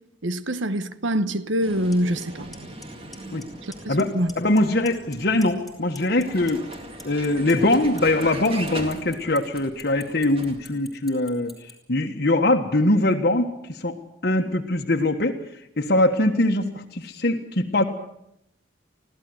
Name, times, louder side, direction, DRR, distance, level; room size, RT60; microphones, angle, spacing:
voice 1, 0.2-2.5 3.6-4.3, right 1 dB, 75° right, 1.2 m, -25 dB
Vehicle, 1.6-10.7, right 1 dB, 30° right, 2.4 m, -39 dB
Clock, 1.9-2.0 2.2-2.6 2.8-3.4 3.7-4.0 4.3-5.2 5.4-11.7, left 3 dB, ahead, 4.9 m, -42 dB
voice 2, 3.9-6.6 7.0-13.9 14.2-15.4 15.8-17.8, left 1 dB, 55° left, 1.5 m, -22 dB
24.5 x 16.5 x 8.0 m
head